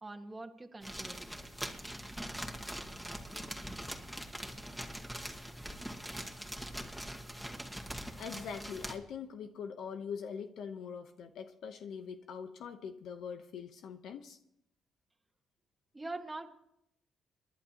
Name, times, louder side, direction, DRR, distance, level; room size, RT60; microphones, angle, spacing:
voice 1, 0.0-1.2 15.9-16.5, right 2 dB, 20° right, 1.6 m, -43 dB
sound 1, 0.8-9.0, equal, ahead, 1.9 m, -42 dB
voice 2, 8.2-14.4, left 6 dB, 75° left, 1.0 m, -43 dB
28.5 x 11.5 x 3.0 m
cardioid pair, 90°, 0 cm